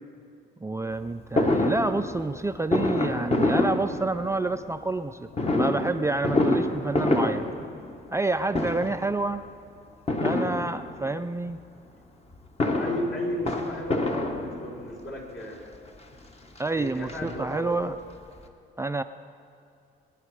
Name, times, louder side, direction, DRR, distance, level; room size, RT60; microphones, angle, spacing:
voice 1, 0.6-7.5 8.1-9.4 10.2-11.6 16.6-18.0 18.8-19.0, right 2 dB, 15° right, 8 dB, 0.4 m, -28 dB
Fireworks, 1.4-4.6 5.3-8.3 8.5-9.1 10.1-11.2 12.3-15.0 15.7-15.8 16.1-16.2 16.6-17.8 18.1-18.2 18.4-18.5, left 2 dB, 30° left, 1.3 m, -27 dB
voice 2, 12.8-15.7 16.7-17.8, left 1 dB, 55° left, -2 dB, 3.8 m, -34 dB
21.0 x 10.0 x 4.8 m, 2.5 s
cardioid pair, 90°, 20 cm